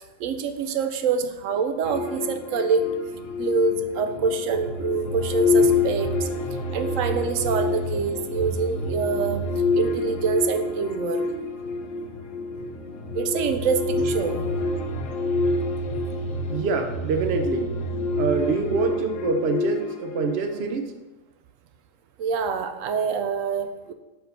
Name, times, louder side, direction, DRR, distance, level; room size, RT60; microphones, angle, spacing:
voice 1, 0.2-2.9 3.4-6.3 6.7-9.5 9.7-11.2 13.1-14.5 22.2-23.9, right 5 dB, 90° right, 8 dB, 1.0 m, -26 dB
sound 1, 1.8-20.7, left 3 dB, 80° left, 1.1 m, -27 dB
voice 2, 16.5-17.7 18.2-21.0, right 4 dB, 60° right, 6 dB, 0.9 m, -25 dB
5.8 x 4.6 x 5.3 m, 1.1 s
omnidirectional pair, 1.3 m